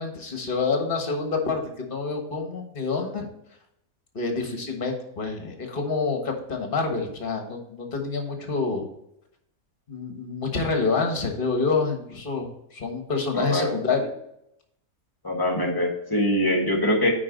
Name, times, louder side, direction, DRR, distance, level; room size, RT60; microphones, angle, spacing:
voice 1, 0.0-3.3 4.1-8.8 9.9-14.0, left 4 dB, 40° left, 3 dB, 1.5 m, -27 dB
voice 2, 13.3-13.7 15.2-17.1, left 1 dB, 15° left, 1 dB, 1.5 m, -23 dB
9.7 x 4.7 x 3.9 m, 0.78 s
omnidirectional pair, 1.5 m